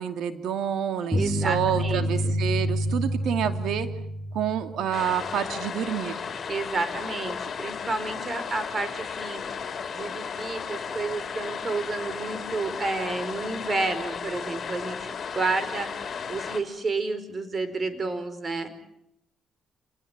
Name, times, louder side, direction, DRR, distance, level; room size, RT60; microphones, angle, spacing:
voice 1, 0.0-3.9 4.3-6.1, right 9 dB, 80° right, 8 dB, 2.7 m, -28 dB
sound 1, 1.1-5.3, equal, 5° right, 3.8 m, -28 dB
voice 2, 1.1-2.3 6.5-9.4 9.9-18.7, right 3 dB, 35° right, 11 dB, 4.8 m, -31 dB
sound 2, 4.9-16.6, left 6 dB, 45° left, 5.0 m, -34 dB
28.5 x 20.0 x 9.0 m, 0.75 s
cardioid pair, 90°, 0 cm